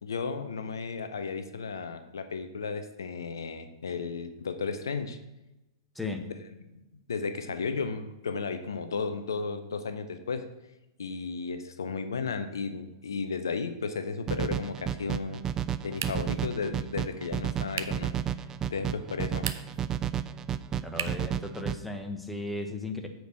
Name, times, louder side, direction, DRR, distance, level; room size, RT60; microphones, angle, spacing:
voice 1, 0.0-5.2 6.7-6.8 7.1-10.4 11.0-15.4 15.8-18.1 18.7-19.5, left 5 dB, 70° left, 9 dB, 0.7 m, -34 dB
sound 1, 14.3-21.8, right 9 dB, 25° right, 0.3 m, -32 dB
sound 2, 15.9-16.4 17.7-18.1 19.3-19.9 20.9-21.3, right 8 dB, 65° right, 0.6 m, -36 dB
voice 2, 20.8-23.1, left 2 dB, 5° left, 5 dB, 1.0 m, -35 dB
8.0 x 4.6 x 6.5 m, 0.97 s
figure-of-eight pair, 100°, 2 cm